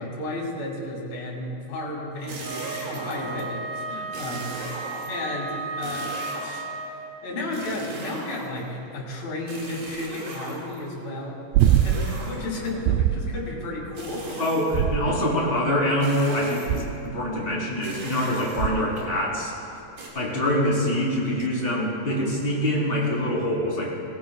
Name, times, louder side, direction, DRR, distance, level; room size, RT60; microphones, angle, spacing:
voice 1, 0.0-6.2 6.4-6.7 7.2-11.4 11.7-14.8 15.1-15.2, left 2 dB, 70° left, -3 dB, 4.3 m, -33 dB
sound 1, 2.1-3.5 4.1-5.3 5.8-6.7 7.5-8.7 9.5-10.9 11.6-12.7 14.0-14.9 16.0-16.9 17.8-19.0 20.0-20.1, right 3 dB, 70° right, 3.7 m, -38 dB
Wind instrument woodwind instrument, 2.4-7.3, right 3 dB, 10° right, 0.8 m, -35 dB
sound 2, 11.5-12.2 12.9-13.4 14.7-15.4 16.7-17.1 18.6-19.0 21.4-21.5, right 11 dB, 85° right, 2.4 m, -22 dB
voice 2, 14.4-19.5 20.1-23.9, left 1 dB, 15° left, -5 dB, 2.9 m, -25 dB
19.0 x 17.5 x 2.3 m, 3.0 s
omnidirectional pair, 4.3 m